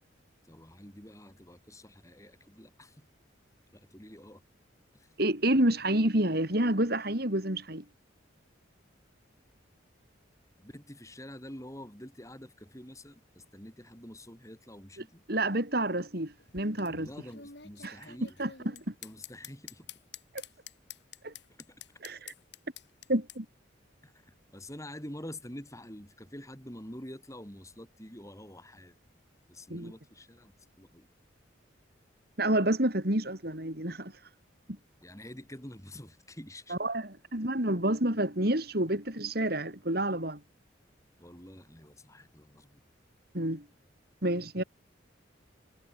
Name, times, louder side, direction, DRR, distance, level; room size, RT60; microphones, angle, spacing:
voice 1, 0.4-3.1 3.7-4.4 4.9-5.1 10.6-15.2 17.0-18.4 19.0-19.9 21.7-21.8 24.0-29.0 29.5-31.1 35.0-36.8 41.2-42.8, left 1 dB, 15° left, 7.3 m, -47 dB
voice 2, 5.2-7.8 15.3-17.1 17.8-17.9 18.4-18.5 18.9-19.0 21.2-21.3 22.0-22.3 23.1-23.5 29.7-29.9 32.4-34.1 36.7-40.4 43.3-43.7 44.2-44.6, right 1 dB, 50° right, 4.0 m, -29 dB
sound 1, 16.3-23.4, left 8 dB, 60° left, 7.3 m, -48 dB
head